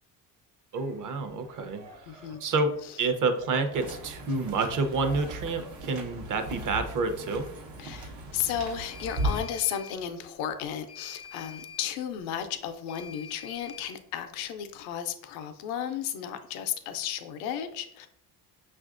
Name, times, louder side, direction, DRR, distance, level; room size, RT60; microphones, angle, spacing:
voice 1, 0.7-1.8 2.1-2.7 3.0-7.5, right 3 dB, 45° right, 8 dB, 0.7 m, -28 dB
sound 1, 0.7-6.2, right 1 dB, 90° right, 1.3 m, -53 dB
voice 2, 2.1-2.4 2.8-3.0 7.8-18.1, left 9 dB, 90° left, 8 dB, 0.5 m, -34 dB
sound 2, 3.7-9.4, right 1 dB, 70° right, 1.0 m, -37 dB
sound 3, 3.9-4.0 8.9-10.0 10.9-12.0 12.9-14.0, left 7 dB, 20° left, 0.4 m, -46 dB
5.8 x 2.5 x 2.4 m, 0.70 s
supercardioid pair, 85°, 46 cm